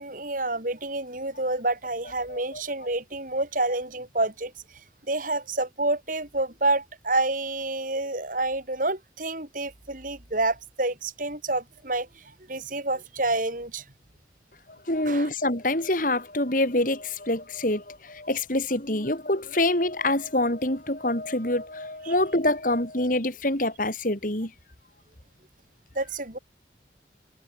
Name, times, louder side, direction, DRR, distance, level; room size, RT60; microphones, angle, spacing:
voice 1, 0.0-4.5 5.1-13.8 15.1-15.3 22.1-22.2 25.9-26.4, right 2 dB, 50° right, 7.7 m, -28 dB
voice 2, 2.3-2.6 14.9-24.5, left 1 dB, 50° left, 5.2 m, -26 dB
head